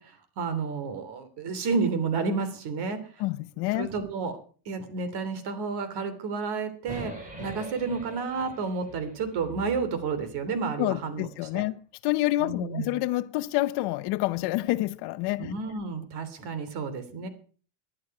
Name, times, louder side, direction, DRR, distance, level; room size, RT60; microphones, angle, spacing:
voice 1, 0.0-3.2 3.7-4.4 4.6-11.3 11.5-11.6 12.4-12.9 15.4-17.3, right 4 dB, 55° right, 3.2 m, -31 dB
voice 2, 3.2-3.9 10.8-15.5, left 18 dB, 55° left, 0.7 m, -28 dB
sound 1, 6.9-11.1, right 2 dB, 15° right, 4.4 m, -43 dB
19.0 x 11.0 x 4.8 m
supercardioid pair, 135°, 48 cm